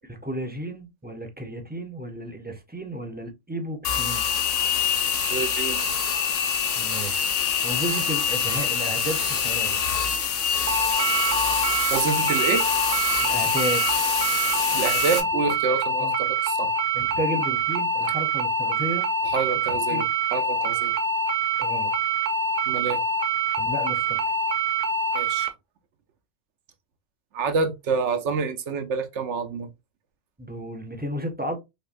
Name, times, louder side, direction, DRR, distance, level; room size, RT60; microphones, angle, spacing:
voice 1, 0.1-4.3 6.8-7.3 7.6-9.8 13.2-13.9 16.0-16.1 16.9-19.1 19.9-20.0 21.6-21.9 23.6-24.3 30.4-31.6, right 1 dB, 10° right, 0.5 m, -32 dB
sound 1, 3.8-15.2, left 7 dB, 85° left, 1.2 m, -25 dB
voice 2, 5.3-5.8 11.9-12.6 14.7-16.7 19.2-20.0 20.3-20.9 22.7-23.0 25.1-25.5 27.3-29.7, right 4 dB, 75° right, 1.0 m, -27 dB
sound 2, 10.7-25.5, right 3 dB, 45° right, 0.7 m, -25 dB
5.5 x 2.1 x 2.5 m
omnidirectional pair, 1.2 m